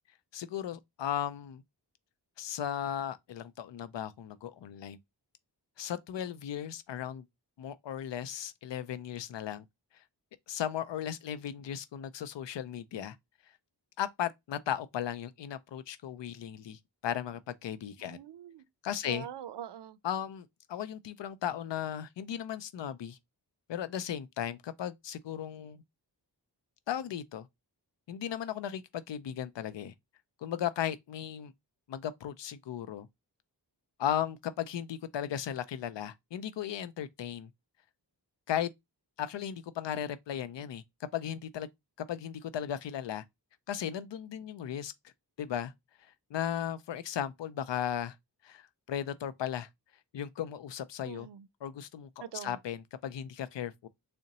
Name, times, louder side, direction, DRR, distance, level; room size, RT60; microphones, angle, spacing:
voice 1, 0.3-1.6 2.4-5.0 5.8-7.2 7.6-9.6 10.5-13.2 14.0-18.2 18.8-19.2 20.0-23.2 23.7-25.8 26.9-27.5 28.1-29.9 30.4-31.5 31.9-33.1 34.0-37.5 38.5-38.7 39.2-41.7 42.1-43.2 43.7-44.9 45.4-45.7 46.3-48.2 48.4-49.7 50.1-51.3 51.6-52.1 52.4-53.9, left 10 dB, 85° left, 0.5 m, -36 dB
voice 2, 18.0-18.6 19.0-20.0 51.0-51.5 52.2-52.6, right 10 dB, 75° right, 0.5 m, -43 dB
3.7 x 2.1 x 4.0 m
wide cardioid pair, 75°, 42 cm